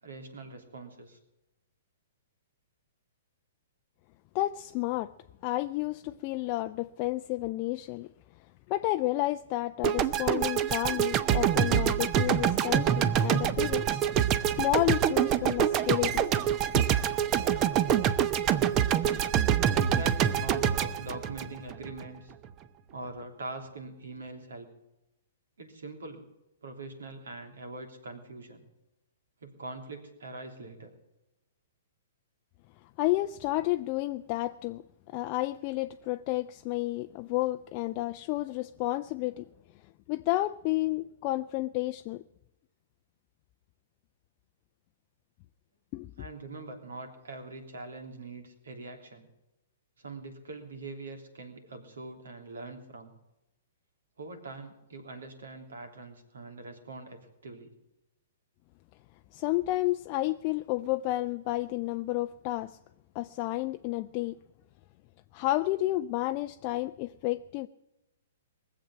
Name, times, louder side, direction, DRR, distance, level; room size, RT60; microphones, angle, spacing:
voice 1, 0.0-1.2 19.7-22.3 22.9-24.7 25.6-26.3 26.6-28.6 29.4-30.9 46.2-49.3 50.0-53.1 54.2-57.7, right 2 dB, 80° right, 3.1 m, -43 dB
voice 2, 4.3-5.1 5.4-8.1 8.7-14.0 14.6-16.8 33.0-39.5 40.1-42.2 45.9-46.1 59.3-62.8 63.1-64.4 65.3-67.7, left 17 dB, 40° left, 0.4 m, -31 dB
sound 1, 9.8-22.1, right 9 dB, 30° right, 0.8 m, -26 dB
20.0 x 7.7 x 8.4 m
hypercardioid pair, 120°, 0 cm